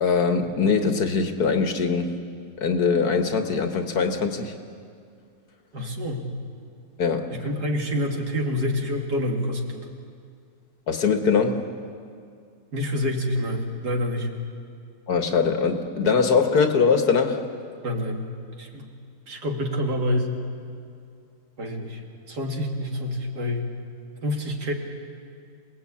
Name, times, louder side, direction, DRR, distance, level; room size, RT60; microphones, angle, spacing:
voice 1, 0.0-2.2 2.6-4.5 7.0-7.3 10.9-11.7 15.1-17.5, left 5 dB, 60° left, 6 dB, 1.8 m, -22 dB
voice 2, 5.7-6.3 7.3-9.9 12.7-14.3 17.8-18.3 18.6-18.9 19.3-20.3 21.6-23.7 24.2-24.7, left 1 dB, 60° right, 2 dB, 2.9 m, -27 dB
27.5 x 19.0 x 8.6 m, 2.3 s
omnidirectional pair, 2.0 m